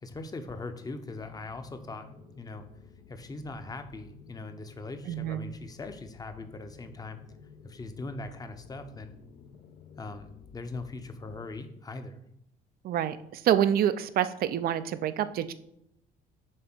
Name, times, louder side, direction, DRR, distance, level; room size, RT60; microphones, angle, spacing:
voice 1, 0.0-2.7 3.1-7.2 7.6-9.2 10.0-12.2, left 3 dB, 20° left, 8 dB, 0.8 m, -40 dB
sound 1, 1.2-11.5, left 5 dB, 70° left, 0.9 m, -53 dB
voice 2, 5.1-5.5 12.8-15.5, right 10 dB, 60° right, 13 dB, 0.5 m, -27 dB
7.6 x 3.4 x 6.2 m, 0.78 s
cardioid pair, 110°, 17 cm